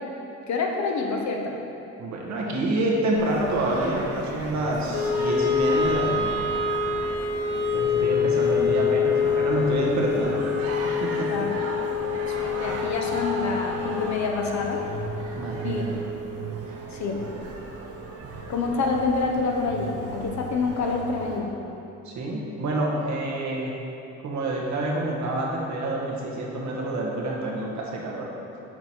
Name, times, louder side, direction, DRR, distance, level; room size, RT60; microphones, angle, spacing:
voice 1, 0.5-1.6 11.3-11.8 12.2-14.8 15.6-15.8 16.9-17.2 18.5-21.6, left 4 dB, 65° left, 1 dB, 0.9 m, -27 dB
voice 2, 2.0-6.6 7.7-10.7 11.0-11.3 15.4-16.0 22.0-23.7 24.2-28.3, right 1 dB, 65° right, -2 dB, 1.2 m, -28 dB
Singing, 3.1-21.4, right 2 dB, 50° right, 0.8 m, -36 dB
Wind instrument woodwind instrument, 4.9-17.1, left 6 dB, 40° left, 0.7 m, -26 dB
6.0 x 4.5 x 4.3 m, 2.9 s
cardioid pair, 90°, 30 cm